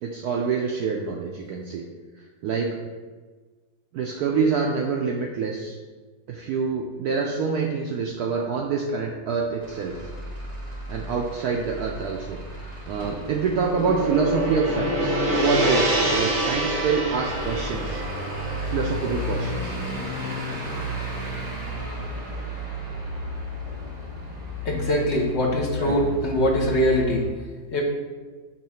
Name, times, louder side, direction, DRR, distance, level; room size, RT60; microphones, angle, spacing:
voice 1, 0.0-1.9 2.4-2.8 3.9-5.8 6.3-10.0 10.9-18.0 18.7-19.8 25.8-26.1, right 5 dB, 75° right, 0 dB, 0.9 m, -26 dB
Truck / Idling, 9.6-27.3, equal, 15° right, 0.9 m, -34 dB
Gong, 13.1-21.4, equal, 50° right, 1.2 m, -27 dB
voice 2, 24.6-27.2 27.7-27.8, left 1 dB, 55° left, -2 dB, 0.8 m, -22 dB
5.7 x 3.1 x 5.6 m, 1.4 s
omnidirectional pair, 2.1 m